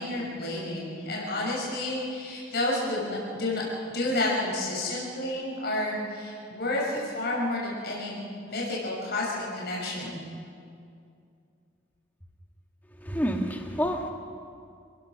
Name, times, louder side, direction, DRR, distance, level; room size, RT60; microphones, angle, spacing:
voice 1, 0.0-8.2 8.5-10.2, left 1 dB, 55° left, -4 dB, 6.5 m, -30 dB
voice 2, 13.0-14.1, equal, 10° left, 2 dB, 1.8 m, -28 dB
29.5 x 16.0 x 6.5 m, 2.4 s
head